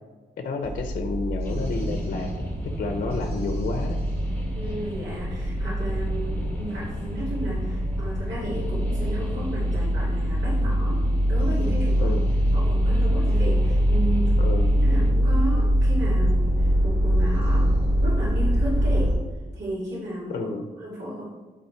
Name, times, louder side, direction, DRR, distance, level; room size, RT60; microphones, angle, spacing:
voice 1, 0.4-2.4 2.8-4.0 12.0-12.3 14.4-14.7 20.3-20.7, left 3 dB, 50° left, 5 dB, 0.7 m, -30 dB
sound 1, 0.6-19.1, equal, 35° right, 1.3 m, -23 dB
sound 2, 1.4-15.1, equal, 10° left, 1.2 m, -36 dB
voice 2, 4.5-12.2 12.5-14.4 14.8-19.2 19.5-20.5 20.8-21.3, right 1 dB, 85° right, -8 dB, 2.3 m, -33 dB
8.5 x 4.0 x 4.5 m, 1.3 s
wide cardioid pair, 175°, 18 cm